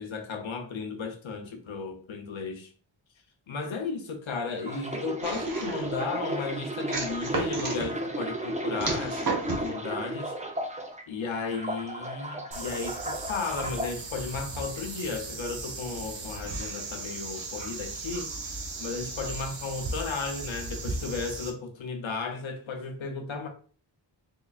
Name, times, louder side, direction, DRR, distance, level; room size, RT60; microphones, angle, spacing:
voice 1, 0.0-2.7 3.5-10.3 11.1-18.3 18.8-23.5, left 4 dB, 85° left, 0.7 m, -34 dB
sound 1, 4.5-11.0 11.4-13.9 14.6-14.8, right 1 dB, 15° right, 0.5 m, -34 dB
sound 2, 5.2-6.0 6.9-7.9 8.8-9.7, right 3 dB, 45° right, 1.1 m, -32 dB
sound 3, 12.5-21.5, right 3 dB, 70° right, 0.8 m, -37 dB
3.8 x 3.1 x 2.4 m
wide cardioid pair, 80°, 46 cm